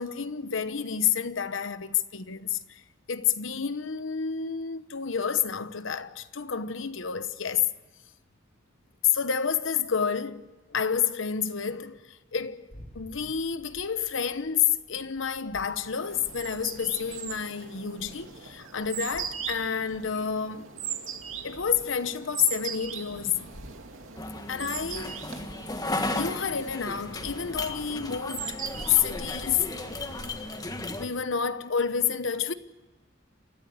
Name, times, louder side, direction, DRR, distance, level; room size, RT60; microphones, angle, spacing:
voice 1, 0.0-2.8 3.1-7.7 9.1-12.7 12.9-20.7 21.4-23.4 24.5-25.2 26.1-28.6 28.9-29.7 31.0-32.5, left 7 dB, 70° left, 1.0 m, -29 dB
sound 1, 12.7-30.1, equal, 40° left, 3.7 m, -53 dB
sound 2, 15.8-30.7, right 7 dB, 85° right, 2.6 m, -40 dB
sound 3, 24.2-31.1, left 2 dB, 20° left, 1.6 m, -35 dB
28.5 x 14.5 x 8.3 m
head